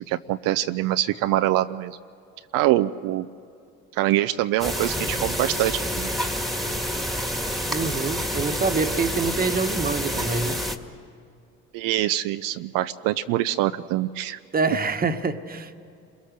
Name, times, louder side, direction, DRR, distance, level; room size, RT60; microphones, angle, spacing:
voice 1, 0.1-2.0 2.5-3.3 3.9-6.1 11.7-14.4, right 14 dB, 75° right, 9 dB, 0.7 m, -24 dB
sound 1, 4.6-10.8, equal, ahead, 1.9 m, -28 dB
voice 2, 7.7-10.6 14.5-15.8, right 4 dB, 25° right, 8 dB, 1.4 m, -26 dB
30.0 x 22.5 x 6.6 m, 2.6 s
supercardioid pair, 85°, 33 cm